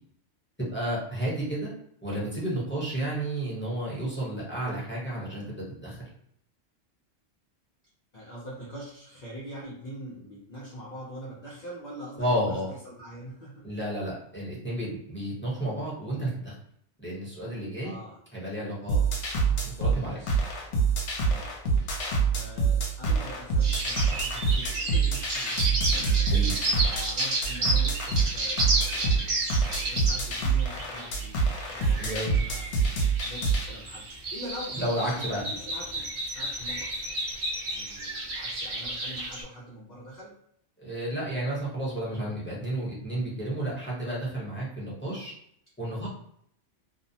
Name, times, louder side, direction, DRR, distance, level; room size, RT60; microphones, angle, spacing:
voice 1, 0.7-1.7 2.0-6.0 12.2-12.7 13.6-16.5 17.0-17.9 18.3-19.0 19.5-20.2 26.3-26.5 32.0-32.3 34.8-35.4 40.8-45.3 45.8-46.1, right 1 dB, 10° left, -7 dB, 0.8 m, -31 dB
voice 2, 8.1-13.7 17.8-18.2 19.9-20.7 21.3-21.5 22.3-31.4 31.7-32.7 33.2-36.9 37.7-40.3 46.0-46.1, equal, 50° left, -6 dB, 0.6 m, -43 dB
sound 1, 18.9-33.7, right 4 dB, 70° left, 0.9 m, -26 dB
sound 2, 23.6-39.4, right 2 dB, 50° right, 0.7 m, -32 dB
2.6 x 2.0 x 2.7 m, 0.69 s
omnidirectional pair, 1.3 m